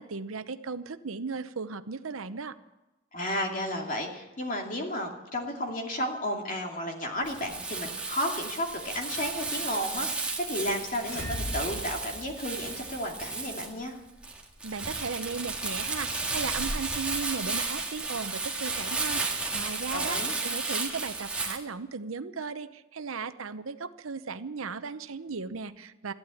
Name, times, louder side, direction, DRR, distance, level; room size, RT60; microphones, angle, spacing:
voice 1, 0.0-2.6 14.6-26.1, right 4 dB, 75° right, 12 dB, 0.8 m, -36 dB
voice 2, 3.1-13.9 19.9-20.4, equal, 40° left, 2 dB, 2.5 m, -33 dB
Crumpling crinkling, 7.2-21.6, right 3 dB, 5° right, 1.9 m, -33 dB
sound 1, 10.9-12.9, left 1 dB, 75° left, 4.0 m, -38 dB
14.0 x 12.0 x 8.5 m, 1.0 s
head